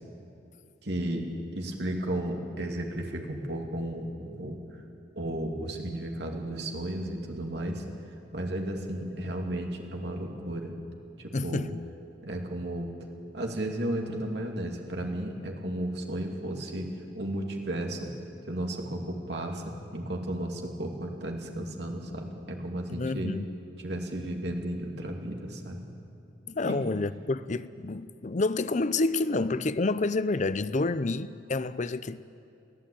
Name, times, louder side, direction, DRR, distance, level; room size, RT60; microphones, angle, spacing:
voice 1, 0.8-1.3 1.5-4.6 5.2-7.8 8.3-10.7 11.2-11.7 12.2-12.9 13.3-16.9 17.1-18.1 18.5-23.3 23.8-25.9 26.6-26.8, right 1 dB, 65° right, 2.8 m, -34 dB
voice 2, 11.3-11.8 22.9-23.5 26.5-32.2, left 3 dB, 40° left, 0.6 m, -29 dB
22.5 x 16.0 x 8.7 m
head